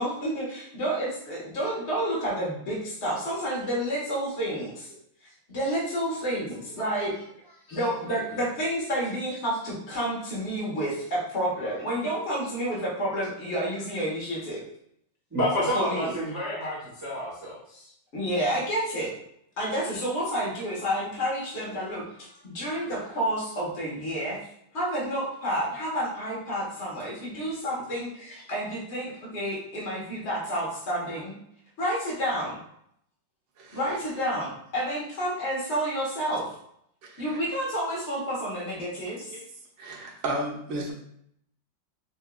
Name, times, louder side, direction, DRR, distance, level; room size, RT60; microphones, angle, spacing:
voice 1, 0.0-4.9 5.2-14.6 15.7-16.1 18.1-19.1 19.6-24.4 24.7-31.3 31.8-32.5 33.7-36.5 37.2-39.4, equal, 40° left, -5 dB, 1.5 m, -30 dB
voice 2, 15.3-17.9, equal, 10° right, -7 dB, 1.0 m, -29 dB
voice 3, 39.8-40.9, right 1 dB, 75° right, -1 dB, 1.6 m, -33 dB
5.8 x 2.7 x 2.3 m, 0.71 s
omnidirectional pair, 2.1 m